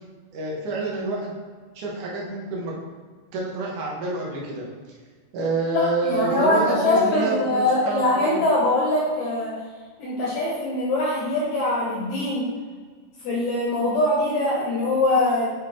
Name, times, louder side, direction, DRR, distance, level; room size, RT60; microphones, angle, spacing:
voice 1, 0.3-1.4 1.7-2.7 3.3-4.7 5.3-8.4, right 2 dB, 65° right, -3 dB, 2.1 m, -28 dB
voice 2, 5.7-9.5 10.0-12.5 13.2-15.5, left 2 dB, 90° left, -5 dB, 1.6 m, -22 dB
8.7 x 4.6 x 3.2 m, 1.5 s
omnidirectional pair, 5.1 m